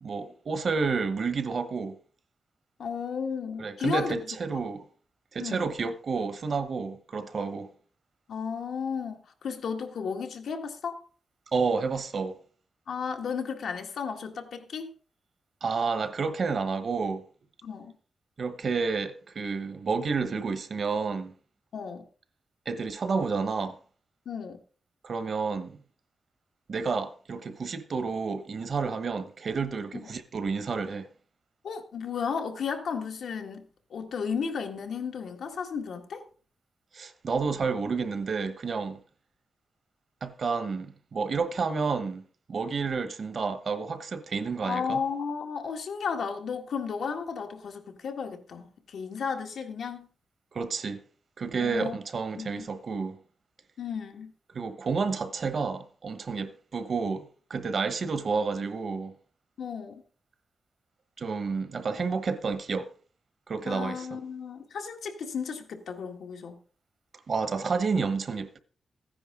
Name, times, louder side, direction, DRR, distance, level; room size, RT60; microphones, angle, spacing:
voice 1, 0.0-2.0 3.6-4.8 5.3-7.7 11.5-12.4 15.6-17.2 18.4-21.3 22.7-23.8 25.0-25.8 26.7-31.1 36.9-39.0 40.2-42.2 42.5-45.0 50.5-51.0 51.4-53.2 54.5-59.1 61.2-62.9 63.5-64.2 67.3-68.6, right 4 dB, 50° right, 1.1 m, -30 dB
voice 2, 2.8-4.2 5.4-5.7 8.3-11.0 12.9-14.9 17.6-17.9 21.7-22.0 24.3-24.6 30.0-30.1 31.6-36.2 44.6-50.1 51.6-52.0 52.4-52.7 53.8-54.3 59.6-60.0 63.6-66.6, left 6 dB, 80° left, 1.8 m, -34 dB
14.5 x 10.0 x 3.8 m
wide cardioid pair, 155°, 0 cm